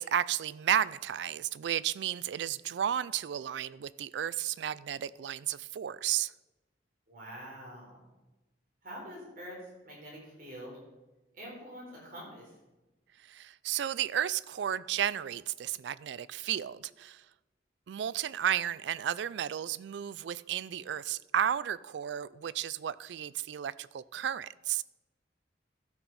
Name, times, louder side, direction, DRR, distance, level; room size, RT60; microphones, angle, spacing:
voice 1, 0.0-6.3 13.3-17.2 17.9-24.8, right 10 dB, 70° right, 0.3 m, -33 dB
voice 2, 7.1-8.1 8.8-9.6 9.8-10.8 11.3-12.5, equal, 50° right, 4.0 m, -45 dB
12.5 x 6.0 x 5.6 m
head